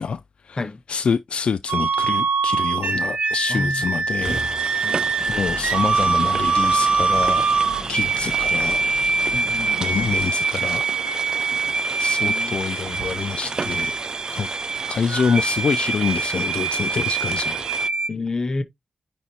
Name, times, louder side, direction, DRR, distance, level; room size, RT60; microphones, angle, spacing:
voice 1, 0.0-0.6 0.9-4.4 5.3-7.5 7.9-8.8 9.8-10.8 12.0-14.0 14.3-14.5 14.9-17.6, left 6 dB, 50° left, 0.4 m, -26 dB
sound 1, 1.7-18.1, right 4 dB, 70° right, 0.9 m, -23 dB
voice 2, 3.5-3.8 4.8-5.0 9.3-9.8 12.2-12.5 18.1-18.6, left 3 dB, 30° left, 0.9 m, -28 dB
sound 2, 4.2-17.9, right 4 dB, 35° right, 0.3 m, -32 dB
sound 3, 5.2-10.3, left 1 dB, 5° left, 1.2 m, -38 dB
9.8 x 4.1 x 3.0 m
wide cardioid pair, 175°, 2 cm